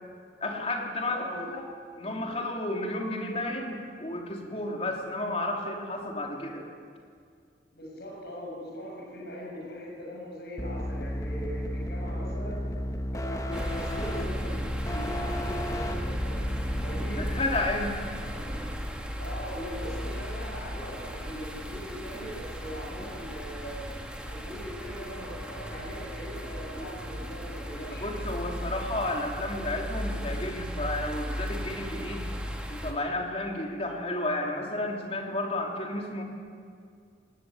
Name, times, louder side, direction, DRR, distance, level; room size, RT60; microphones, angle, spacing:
voice 1, 0.4-1.6 2.0-6.7 17.2-18.2 27.9-32.3 32.7-36.2, left 1 dB, 35° left, 1 dB, 3.3 m, -32 dB
voice 2, 1.0-1.5 7.7-12.7 13.1-14.6 14.9-16.4 16.8-17.3 18.2-18.4 19.2-23.9 24.3-28.1, equal, 65° left, -3 dB, 6.4 m, -40 dB
sound 1, 10.6-17.4, equal, 20° left, 1.2 m, -33 dB
sound 2, 13.5-32.9, equal, 5° right, 2.2 m, -36 dB
21.0 x 20.0 x 8.6 m, 2.2 s
head